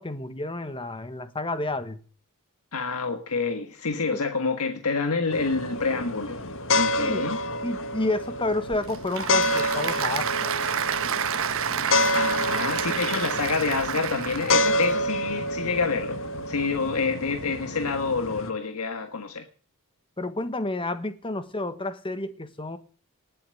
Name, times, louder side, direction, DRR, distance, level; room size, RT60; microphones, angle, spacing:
voice 1, 0.0-2.0 7.0-7.3 7.6-10.6 20.2-22.8, left 2 dB, 25° left, 1.4 m, -30 dB
voice 2, 2.7-6.4 6.8-7.4 12.1-16.2 16.5-19.5, left 4 dB, 80° left, 1.6 m, -27 dB
sound 1, 5.3-18.5, left 1 dB, 60° left, 1.5 m, -28 dB
Applause / Crowd, 8.5-15.0, right 8 dB, 65° right, 1.2 m, -29 dB
19.0 x 8.6 x 7.8 m
head